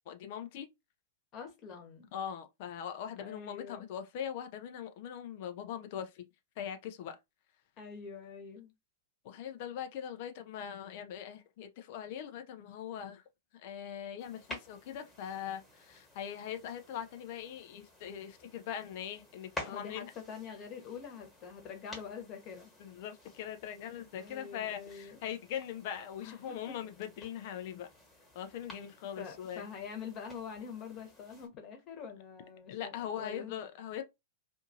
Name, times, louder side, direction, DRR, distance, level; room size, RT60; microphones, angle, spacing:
voice 1, 0.1-0.7 2.1-6.2 6.6-7.2 9.2-13.2 13.5-20.1 22.8-27.9 28.3-29.7 32.7-34.0, left 9 dB, 55° left, 0.5 m, -41 dB
voice 2, 1.3-2.1 3.2-3.8 7.8-8.7 19.6-22.7 24.1-25.2 26.2-26.6 29.2-32.9 33.2-33.6, left 6 dB, 35° left, 1.1 m, -45 dB
sound 1, 14.2-31.5, left 1 dB, 10° left, 1.3 m, -52 dB
2.6 x 2.5 x 2.7 m
figure-of-eight pair, 100°, 0 cm